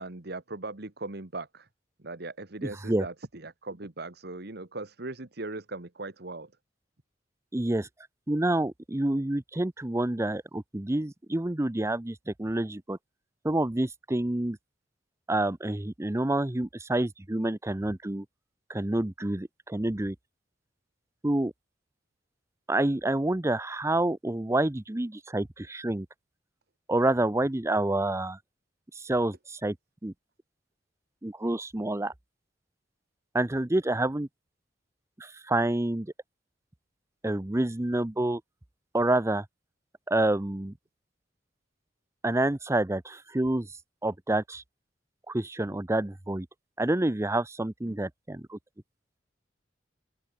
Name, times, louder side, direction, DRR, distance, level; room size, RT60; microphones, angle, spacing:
voice 1, 0.0-1.7 2.0-6.5 47.8-48.0, right 2 dB, 60° right, 1.7 m, -39 dB
voice 2, 7.5-7.9 8.3-13.0 13.4-14.6 15.3-18.3 18.7-20.2 21.2-21.5 22.7-26.1 26.9-28.4 28.9-29.8 30.0-30.1 31.2-32.1 33.3-34.3 35.2-36.1 37.2-38.4 38.9-39.4 40.1-40.7 42.2-43.7 44.0-44.6 45.3-46.5 46.8-48.6, right 1 dB, 15° right, 0.7 m, -28 dB
open air
head